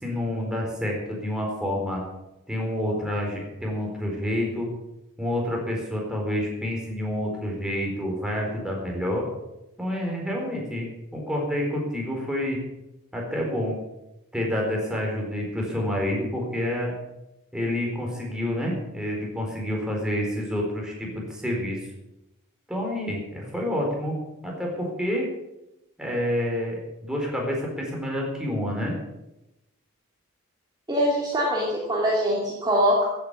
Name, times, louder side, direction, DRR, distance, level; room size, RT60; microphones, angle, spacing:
voice 1, 0.0-2.0 2.5-4.7 5.2-9.3 9.8-12.6 13.1-13.8 14.3-16.9 17.5-21.8 22.7-24.2 24.4-25.3 26.0-29.0, left 1 dB, 5° right, -1 dB, 4.3 m, -28 dB
voice 2, 30.9-33.1, equal, 20° right, -4 dB, 2.7 m, -23 dB
15.5 x 9.0 x 7.0 m, 0.94 s
head